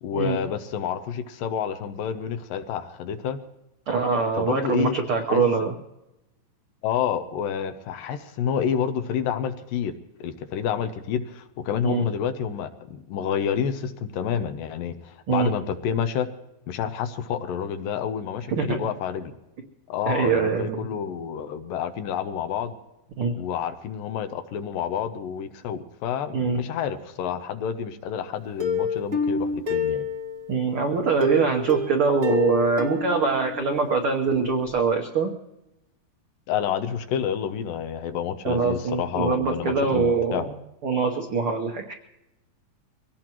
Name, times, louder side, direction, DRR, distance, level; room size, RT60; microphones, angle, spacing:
voice 1, 0.0-3.4 4.3-5.0 5.3-5.5 6.8-9.9 10.2-16.3 16.7-19.4 19.9-22.8 23.4-30.1 36.5-40.5, left 8 dB, 75° left, 9 dB, 2.4 m, -29 dB
voice 2, 3.9-5.7 11.8-12.0 15.3-15.5 18.6-18.8 20.1-20.9 23.2-23.3 26.3-26.6 30.5-35.3 38.4-40.5 40.8-41.9, right 4 dB, 90° right, 3 dB, 1.1 m, -23 dB
Plucked string instrument, 28.6-30.6 31.2-34.0 34.3-34.4 34.8-34.9, left 3 dB, 70° right, 0.5 m, -28 dB
24.0 x 17.5 x 3.0 m, 0.93 s
omnidirectional pair, 4.2 m